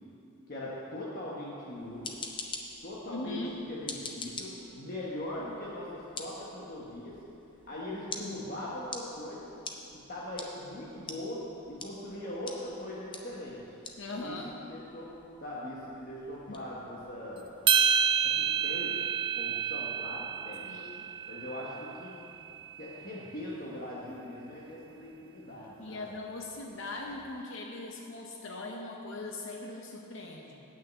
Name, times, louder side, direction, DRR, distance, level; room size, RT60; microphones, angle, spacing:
voice 1, 0.5-2.3 2.8-7.2 7.7-9.5 10.1-13.8 14.1-14.4 14.7-15.1 15.4-17.5 18.2-19.0 19.3-20.7 21.3-22.1 22.8-26.1, left 1 dB, 40° left, -6 dB, 1.2 m, -40 dB
sound 1, 1.8-18.6, left 4 dB, 20° left, 0.6 m, -47 dB
voice 2, 3.1-3.6 14.0-14.6 16.5-16.6 20.6-21.1 25.8-30.6, left 2 dB, 55° left, 0 dB, 0.8 m, -40 dB
sound 2, 17.7-22.1, right 7 dB, 25° right, 0.3 m, -29 dB
8.4 x 6.4 x 8.0 m, 3.0 s
head